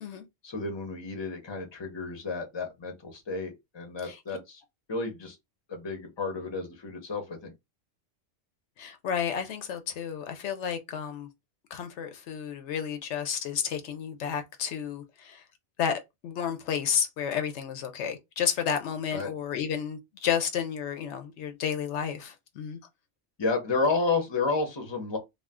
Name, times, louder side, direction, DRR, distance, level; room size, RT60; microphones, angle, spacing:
voice 1, 0.4-4.6 4.9-5.4 5.7-7.5 19.1-19.3 23.4-25.2, left 3 dB, 25° left, 0.7 m, -31 dB
voice 2, 8.8-11.3 11.7-15.4 15.8-22.8, left 8 dB, 75° left, 0.9 m, -31 dB
2.4 x 2.3 x 3.4 m
omnidirectional pair, 1.2 m